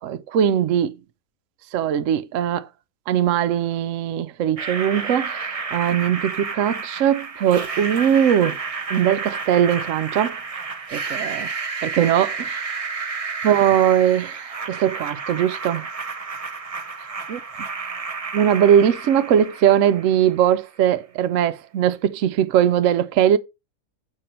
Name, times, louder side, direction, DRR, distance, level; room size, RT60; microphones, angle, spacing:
voice 1, 0.0-0.9 1.7-2.7 3.1-8.6 8.9-10.4 10.9-11.5 11.8-12.7 13.4-15.9 17.3-17.4 18.3-23.4, right 9 dB, 70° right, 0.8 m, -20 dB
sound 1, 4.6-20.5, right 4 dB, 45° right, 0.4 m, -31 dB
7.5 x 5.2 x 4.2 m
omnidirectional pair, 1.8 m